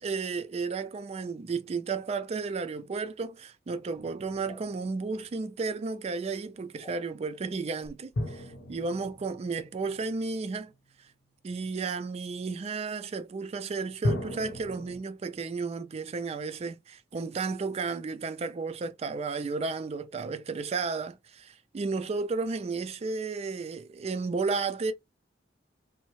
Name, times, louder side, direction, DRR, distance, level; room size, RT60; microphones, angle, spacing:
voice 1, 0.0-10.7 11.4-24.9, right 4 dB, 35° right, 0.3 m, -33 dB
sound 1, 3.9-5.3 8.1-10.7 14.0-15.0, left 1 dB, 85° left, 0.8 m, -36 dB
sound 2, 4.4-4.6 6.8-7.0 7.8-7.9, equal, 10° left, 0.8 m, -47 dB
2.7 x 2.0 x 3.0 m
head